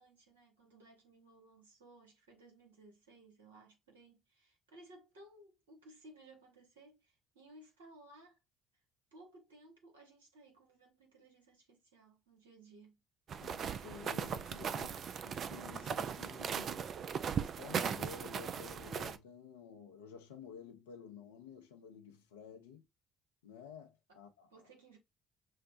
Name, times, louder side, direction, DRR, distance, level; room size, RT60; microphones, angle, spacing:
voice 1, 0.0-8.4 9.1-13.0 24.1-24.2 24.5-25.0, right 2 dB, 85° right, 1.3 m, -59 dB
sound 1, 13.3-19.2, right 7 dB, 55° right, 0.4 m, -38 dB
voice 2, 13.4-16.9 17.3-22.8 23.4-24.7, left 7 dB, 85° left, 0.7 m, -52 dB
6.5 x 2.2 x 2.5 m
hypercardioid pair, 55°, 0 cm